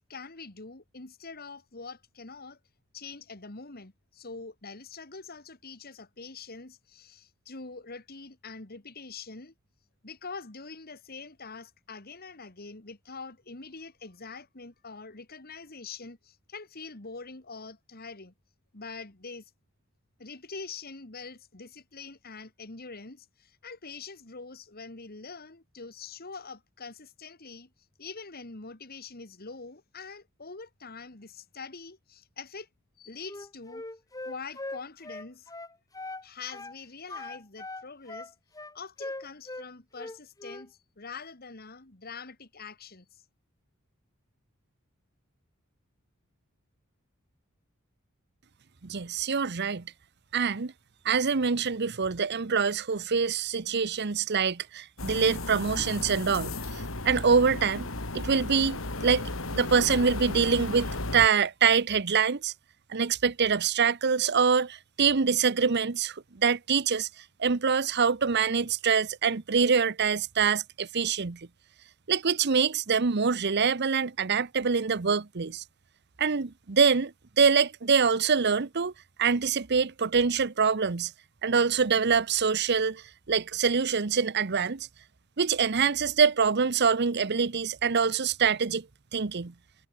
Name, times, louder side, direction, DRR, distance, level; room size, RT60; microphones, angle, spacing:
voice 1, 0.0-2.6 2.9-9.5 10.0-18.3 18.7-19.5 20.2-27.7 28.0-32.7 33.0-33.8 34.2-35.5 36.2-38.3 38.7-43.2, left 4 dB, 45° left, 2.3 m, -44 dB
Wind instrument woodwind instrument, 33.2-36.2 36.5-36.8 37.1-39.7 39.9-40.7, left 2 dB, 15° left, 2.3 m, -40 dB
voice 2, 48.8-49.8 50.3-50.7 51.0-57.9 58.1-62.5 62.9-67.1 67.4-71.5 72.1-75.6 76.2-78.9 79.2-81.1 81.4-84.9 85.4-88.9 89.1-89.5, right 6 dB, 55° right, 0.8 m, -25 dB
sound 1, 55.0-61.3, left 2 dB, 70° left, 3.1 m, -35 dB
head